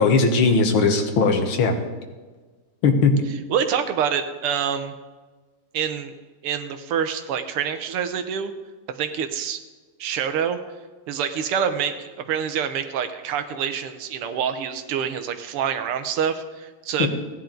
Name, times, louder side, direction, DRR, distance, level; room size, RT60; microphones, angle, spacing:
voice 1, 0.0-1.8 2.8-3.2 17.0-17.1, left 4 dB, 70° left, 5 dB, 2.0 m, -18 dB
voice 2, 3.5-4.9 5.7-6.1 6.4-8.5 8.9-9.6 10.0-10.6 11.1-17.1, right 8 dB, 85° right, 8 dB, 1.8 m, -26 dB
16.0 x 10.5 x 3.9 m, 1.3 s
omnidirectional pair, 2.4 m